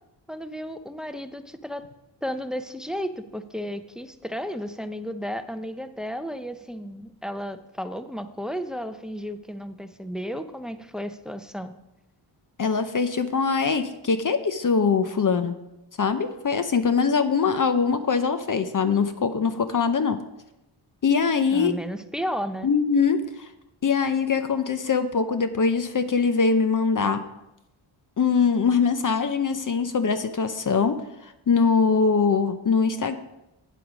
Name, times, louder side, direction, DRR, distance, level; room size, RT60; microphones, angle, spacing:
voice 1, 0.3-1.9 2.2-11.8 21.5-22.7, equal, ahead, 10 dB, 0.6 m, -33 dB
voice 2, 12.6-15.5 16.0-20.2 21.0-21.7 22.6-23.5 23.8-27.2 28.2-30.9 31.5-33.2, left 5 dB, 40° left, 10 dB, 0.7 m, -22 dB
9.1 x 7.6 x 5.1 m, 0.91 s
cardioid pair, 75°, 49 cm